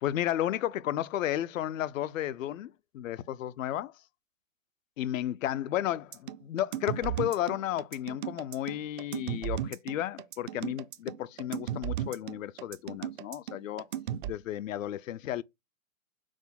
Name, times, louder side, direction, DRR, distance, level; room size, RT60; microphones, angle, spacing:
voice 1, 0.0-3.9 5.0-13.9 14.2-15.4, left 12 dB, 75° left, 0.5 m, -33 dB
sound 1, 6.1-14.3, right 11 dB, 40° right, 0.4 m, -35 dB
6.0 x 2.1 x 4.0 m
hypercardioid pair, 135°, 40 cm